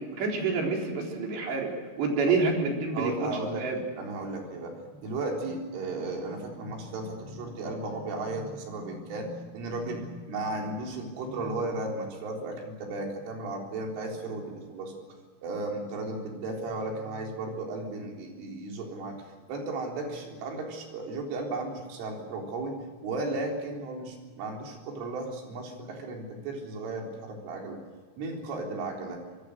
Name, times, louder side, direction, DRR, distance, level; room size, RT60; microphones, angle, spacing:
voice 1, 0.2-1.7 2.0-3.8, right 4 dB, 65° right, 0 dB, 5.9 m, -28 dB
voice 2, 2.9-3.6 4.0-14.9 15.4-19.2 19.5-27.8 28.2-29.2, right 2 dB, 85° right, 1 dB, 6.4 m, -35 dB
24.5 x 22.0 x 6.6 m, 1.5 s
omnidirectional pair, 5.5 m